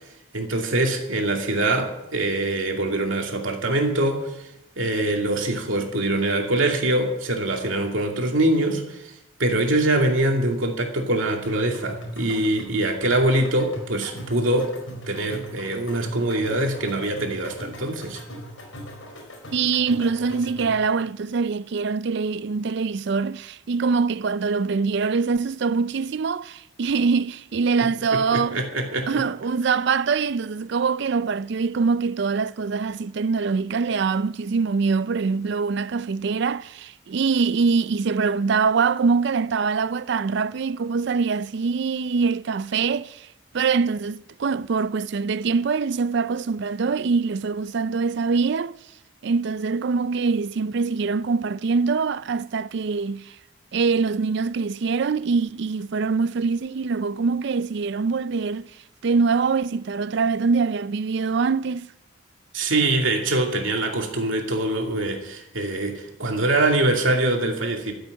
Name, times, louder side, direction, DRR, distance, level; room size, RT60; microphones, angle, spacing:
voice 1, 0.3-4.3 4.8-9.0 9.4-14.7 15.1-18.2 27.8-27.9 28.3-29.1 62.5-67.9, right 1 dB, 75° right, 2.5 m, -23 dB
sound 1, 11.4-20.9, equal, 75° left, 5.1 m, -39 dB
voice 2, 19.5-28.6 29.1-43.3 43.5-48.8 49.2-53.4 53.7-58.7 59.0-61.9, right 5 dB, 55° right, 0.4 m, -24 dB
13.5 x 8.1 x 9.4 m
head